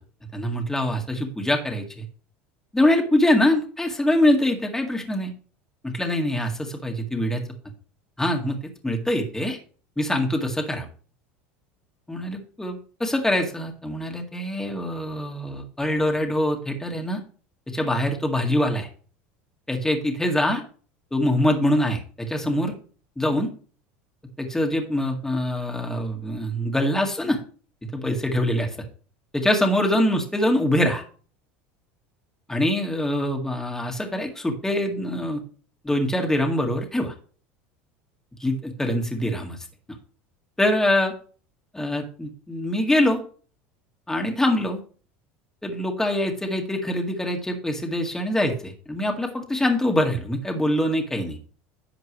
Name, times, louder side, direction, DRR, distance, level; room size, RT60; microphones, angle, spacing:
voice 1, 0.3-2.0 2.7-5.3 5.8-7.4 8.2-9.6 10.0-10.9 12.1-17.2 17.7-18.9 19.7-20.6 21.1-22.7 23.2-23.5 24.4-27.4 27.9-28.7 29.3-31.0 32.5-35.4 35.8-37.1 38.4-39.6 40.6-41.1 41.7-43.2 44.1-44.8 45.6-51.4, left 1 dB, 10° left, 2 dB, 1.9 m, -24 dB
11.0 x 7.2 x 3.3 m, 0.40 s
supercardioid pair, 95°, 6 cm